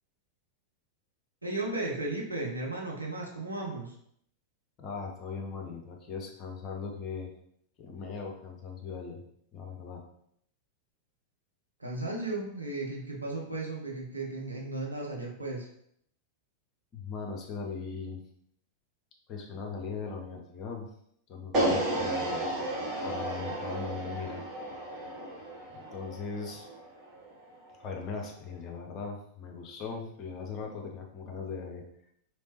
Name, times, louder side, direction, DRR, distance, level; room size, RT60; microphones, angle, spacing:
voice 1, 1.4-3.9 11.8-15.7, right 2 dB, 85° right, -2 dB, 0.8 m, -35 dB
voice 2, 4.8-7.3 7.8-9.2 9.5-10.0 16.9-18.2 19.3-20.9 21.3-22.4 23.0-24.4 25.7-26.7 27.8-31.8, left 5 dB, 35° left, 1 dB, 0.7 m, -39 dB
sound 1, 21.5-27.7, right 1 dB, 30° right, 1.3 m, -33 dB
3.4 x 3.1 x 2.9 m, 0.70 s
figure-of-eight pair, 90°, 0 cm